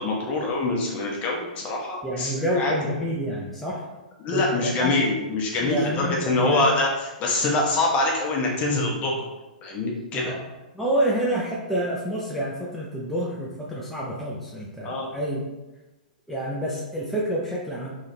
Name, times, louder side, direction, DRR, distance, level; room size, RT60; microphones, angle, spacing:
voice 1, 0.0-2.8 4.2-6.9 7.2-9.2 9.6-10.3 14.8-15.1, left 2 dB, 30° left, -1 dB, 1.0 m, -24 dB
voice 2, 2.0-3.9 4.3-4.9 5.6-6.7 10.1-10.4 10.7-15.4 16.3-17.9, right 1 dB, ahead, -6 dB, 0.6 m, -28 dB
3.6 x 3.3 x 2.8 m, 1.1 s
hypercardioid pair, 115°, 5 cm